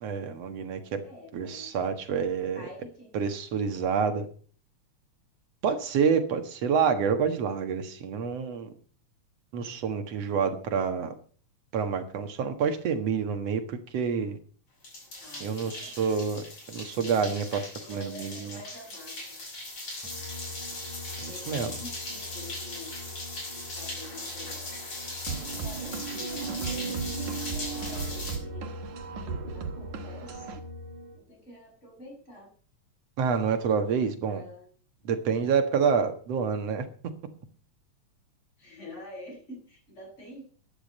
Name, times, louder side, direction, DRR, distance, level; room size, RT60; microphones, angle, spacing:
voice 1, 0.0-1.0 1.3-2.6 3.1-4.3 5.6-8.7 9.5-11.1 11.7-14.4 15.4-16.4 16.7-18.3 21.2-21.7 33.2-34.4 35.1-36.9, right 6 dB, 60° right, 7 dB, 2.6 m, -28 dB
voice 2, 1.0-1.7 2.5-3.1 15.2-16.3 17.7-19.6 21.2-23.0 23.5-25.0 25.5-28.7 29.5-30.6 31.1-32.5 34.3-34.7 38.6-40.4, left 1 dB, 20° left, -1 dB, 7.8 m, -47 dB
sound 1, 14.8-28.4, left 2 dB, 50° left, 7.5 m, -39 dB
sound 2, 20.0-31.2, left 2 dB, 5° left, 4.4 m, -43 dB
sound 3, 25.3-30.6, right 5 dB, 80° right, 3.1 m, -36 dB
14.0 x 11.0 x 5.5 m, 0.43 s
omnidirectional pair, 3.4 m